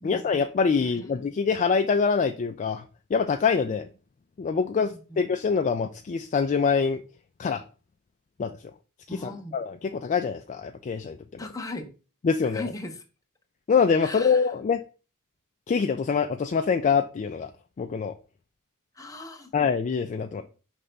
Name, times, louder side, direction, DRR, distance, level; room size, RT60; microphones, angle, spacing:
voice 1, 0.0-2.8 3.1-3.9 4.4-7.0 7.4-7.6 8.4-8.6 9.1-11.4 12.2-12.6 13.7-14.8 15.7-17.5 17.8-18.1 19.5-20.4, left 5 dB, 35° left, 0.3 m, -25 dB
voice 2, 4.8-5.2 9.1-9.6 11.4-11.9 12.5-12.9 14.0-14.4 19.0-19.5, left 2 dB, 15° left, 0.9 m, -38 dB
5.4 x 3.4 x 5.2 m
head